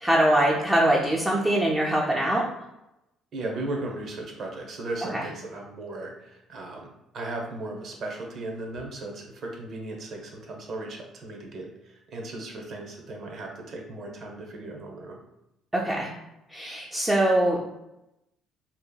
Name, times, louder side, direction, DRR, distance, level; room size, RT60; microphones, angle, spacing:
voice 1, 0.0-2.5 5.1-5.2 15.7-16.1 16.5-17.6, right 1 dB, 10° right, -4 dB, 0.4 m, -23 dB
voice 2, 3.3-6.9 7.1-15.2, right 2 dB, 50° right, 1 dB, 0.6 m, -36 dB
2.7 x 2.4 x 2.2 m, 0.89 s
cardioid pair, 110°, 0 cm